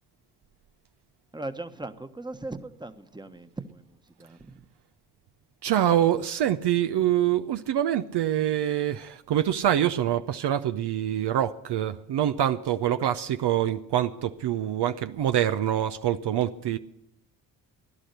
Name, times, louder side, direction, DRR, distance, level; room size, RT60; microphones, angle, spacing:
voice 1, 1.3-4.7, right 2 dB, 10° right, 1.2 m, -39 dB
voice 2, 5.6-16.8, right 11 dB, 55° right, 0.7 m, -25 dB
16.0 x 11.5 x 6.7 m
hypercardioid pair, 45°, 48 cm